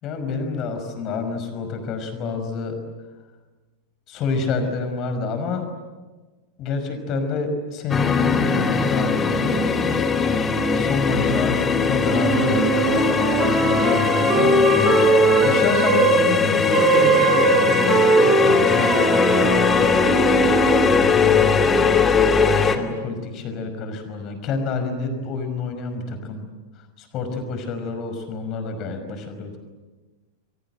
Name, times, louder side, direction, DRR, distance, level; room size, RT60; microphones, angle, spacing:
voice 1, 0.0-2.8 4.1-5.7 6.6-9.8 10.7-14.5 15.4-22.0 22.5-26.5 27.0-29.6, left 4 dB, 35° left, 8 dB, 5.5 m, -28 dB
sound 1, 7.9-22.8, left 5 dB, 20° left, 2.5 m, -20 dB
sound 2, 12.1-16.2 16.7-20.9, right 4 dB, 30° right, 5.4 m, -20 dB
30.0 x 23.5 x 8.0 m, 1.3 s
figure-of-eight pair, 90°, 0 cm